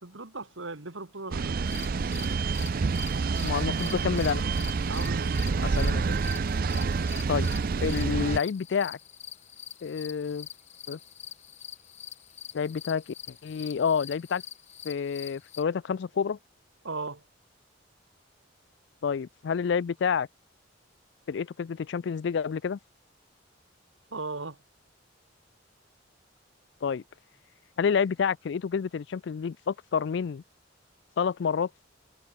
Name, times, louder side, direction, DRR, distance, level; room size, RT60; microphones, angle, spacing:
voice 1, 0.0-1.6 4.9-5.5 16.8-17.2 24.1-24.6, right 3 dB, 75° right, 2.1 m, -37 dB
sound 1, 1.3-8.4, right 4 dB, 45° right, 0.4 m, -28 dB
sound 2, 1.7-15.6, left 10 dB, 35° left, 1.4 m, -45 dB
voice 2, 3.4-4.4 5.6-6.2 7.3-7.5 7.8-9.0 9.8-10.5 10.9-11.0 12.5-14.4 14.8-16.4 19.0-20.3 21.3-22.8 26.8-27.0 27.8-30.4 31.2-31.7, left 6 dB, 60° left, 0.4 m, -29 dB
head